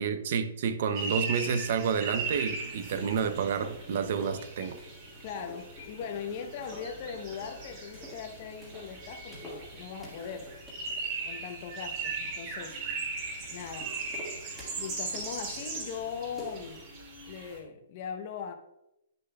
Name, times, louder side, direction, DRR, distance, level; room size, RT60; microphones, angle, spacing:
voice 1, 0.0-4.8, right 6 dB, 45° right, 10 dB, 0.5 m, -29 dB
sound 1, 0.9-17.6, right 4 dB, 30° right, 2.7 m, -39 dB
sound 2, 2.0-16.8, equal, 5° right, 1.6 m, -49 dB
voice 2, 5.2-10.5 11.3-12.8 13.5-13.9 14.7-16.8 17.3-18.5, left 7 dB, 35° left, 7 dB, 0.7 m, -39 dB
9.7 x 6.7 x 2.3 m, 0.84 s
hypercardioid pair, 170°, 0 cm